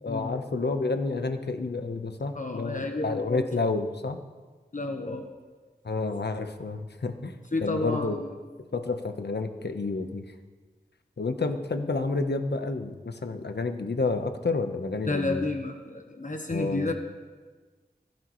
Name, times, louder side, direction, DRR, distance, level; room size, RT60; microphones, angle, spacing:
voice 1, 0.0-4.2 5.8-7.3 7.6-8.2 8.7-10.2 11.2-15.4 16.5-16.9, left 3 dB, 90° left, 7 dB, 1.1 m, -30 dB
voice 2, 2.3-3.4 4.7-5.3 7.5-8.4 15.1-16.9, left 2 dB, 50° left, 3 dB, 1.2 m, -31 dB
25.0 x 12.0 x 3.2 m, 1.4 s
wide cardioid pair, 65°, 17 cm